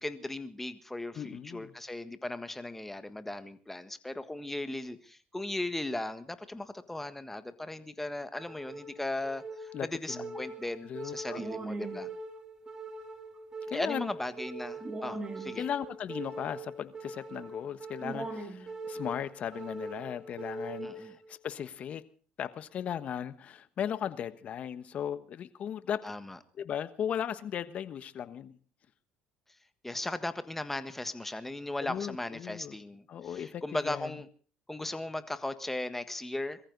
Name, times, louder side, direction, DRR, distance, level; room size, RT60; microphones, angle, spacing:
voice 1, 0.0-12.1 13.7-15.6 20.8-21.1 26.0-26.4 29.8-33.0 33.3-34.3 34.7-36.6, left 2 dB, 10° left, 1.5 m, -37 dB
voice 2, 1.1-1.7 9.7-10.4 10.8-11.4 13.7-14.1 15.6-22.0 22.4-26.0 26.6-28.6 31.8-32.8 33.1-34.2, left 9 dB, 50° left, 1.2 m, -37 dB
sound 1, 8.4-21.4, right 2 dB, 25° right, 3.1 m, -41 dB
22.0 x 14.5 x 4.0 m
supercardioid pair, 100°, 3 cm